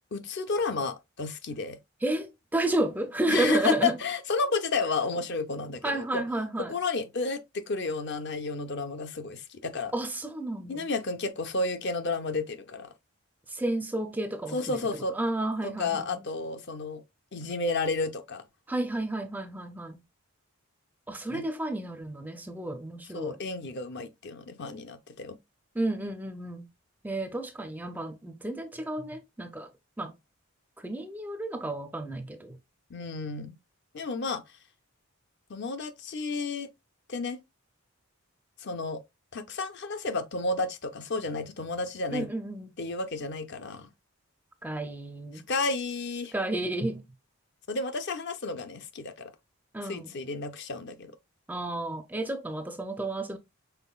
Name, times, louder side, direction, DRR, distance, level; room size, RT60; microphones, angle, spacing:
voice 1, 0.1-1.8 3.3-6.2 6.6-9.9 10.7-12.9 14.5-15.1 15.6-17.0 17.3-18.4 21.3-21.4 23.1-25.4 32.9-33.6 33.9-34.4 35.5-36.7 37.1-37.4 38.6-39.0 39.3-42.3 42.8-43.9 45.5-46.3 47.7-49.3 49.8-51.1, left 3 dB, 50° left, 0.6 m, -32 dB
voice 2, 2.0-4.0 5.8-6.7 9.9-10.9 13.5-14.8 15.1-16.2 18.7-20.0 21.1-23.4 25.7-26.7 27.0-29.7 30.0-30.1 30.8-32.6 42.1-42.7 44.6-45.5 46.3-47.0 49.7-50.1 51.5-53.4, right 1 dB, 10° right, 0.4 m, -31 dB
5.7 x 3.8 x 2.3 m
head